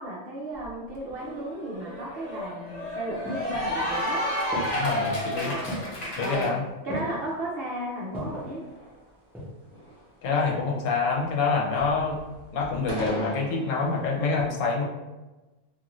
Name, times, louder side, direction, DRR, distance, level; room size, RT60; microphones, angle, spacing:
voice 1, 0.0-4.3 5.4-5.8 6.2-6.5 6.8-8.7, right 1 dB, 60° right, -4 dB, 0.6 m, -34 dB
Cheering / Applause, 0.6-0.7 1.1-6.5, equal, 45° left, 0.5 m, -31 dB
sound 1, 2.7-4.0 4.5-5.0 5.7-6.1 6.9-7.3 8.1-8.5 9.1-9.7 10.0-10.1, equal, ahead, 0.6 m, -36 dB
voice 2, 4.7-5.5 6.2-6.6 10.2-12.2 12.5-14.8, left 4 dB, 75° left, -1 dB, 1.0 m, -26 dB
sound 2, 8.2-9.3 9.7-10.2 10.4-11.4 11.7-14.2, equal, 40° right, 1.0 m, -40 dB
2.5 x 2.5 x 2.9 m, 1.1 s
omnidirectional pair, 1.4 m